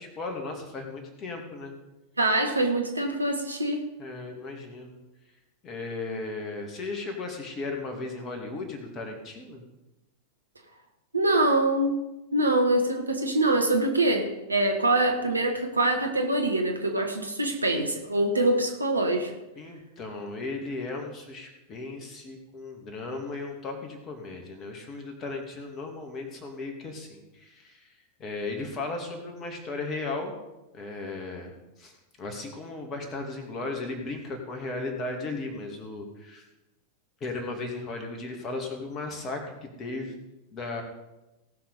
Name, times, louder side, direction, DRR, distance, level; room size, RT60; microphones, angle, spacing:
voice 1, 0.0-1.7 4.0-4.9 5.6-9.6 19.6-27.9 28.2-30.3 30.7-31.5 31.8-36.4 37.2-40.1 40.5-40.8, left 3 dB, 30° left, 2 dB, 2.5 m, -36 dB
voice 2, 2.2-3.9 11.1-19.3, right 2 dB, 80° right, 3 dB, 1.5 m, -24 dB
18.0 x 6.1 x 5.2 m, 0.99 s
figure-of-eight pair, 90°, 0 cm